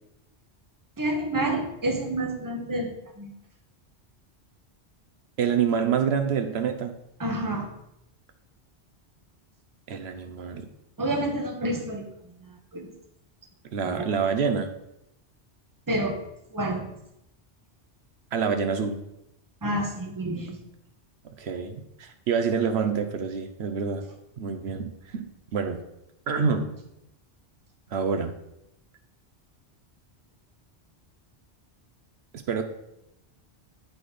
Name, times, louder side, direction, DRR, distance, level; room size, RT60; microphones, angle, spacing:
voice 1, 1.0-2.9 3.2-3.3 7.2-7.7 11.0-12.0 12.7-12.8 14.0-14.1 15.9-16.2 16.5-16.8 19.6-20.6, right 1 dB, 20° right, 4 dB, 1.0 m, -28 dB
voice 2, 5.4-6.9 9.9-10.7 13.7-14.7 18.3-19.0 21.2-24.0 24.4-25.3 25.5-25.8 26.3-26.7 27.9-28.3 32.3-32.6, right 6 dB, 70° right, 6 dB, 0.9 m, -27 dB
9.2 x 4.3 x 4.9 m, 0.83 s
omnidirectional pair, 1.1 m